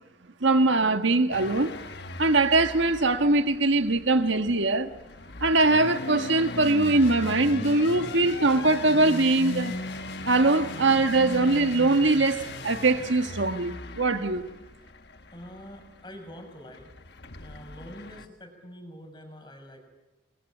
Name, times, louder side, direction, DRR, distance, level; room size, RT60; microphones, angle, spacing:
voice 1, 0.4-1.7 2.2-4.9 5.4-9.7 10.2-14.4, right 2 dB, 70° right, 1.5 m, -22 dB
sound 1, 1.3-18.3, left 3 dB, 55° left, 1.3 m, -38 dB
sound 2, 6.6-13.1, left 2 dB, 75° left, 4.7 m, -46 dB
voice 2, 15.3-16.9 17.4-19.8, equal, 20° left, 6.6 m, -45 dB
29.0 x 22.0 x 9.0 m
head